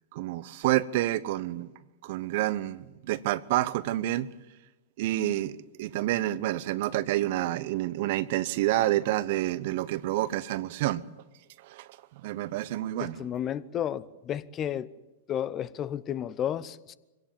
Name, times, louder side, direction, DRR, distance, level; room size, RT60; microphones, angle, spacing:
voice 1, 0.1-1.7 2.0-4.3 5.0-11.0 11.7-11.9 12.2-13.2, right 15 dB, 55° right, 0.9 m, -28 dB
voice 2, 13.0-14.9 15.3-16.9, left 10 dB, 30° left, 0.9 m, -32 dB
24.0 x 17.5 x 9.1 m
hypercardioid pair, 105°, 0 cm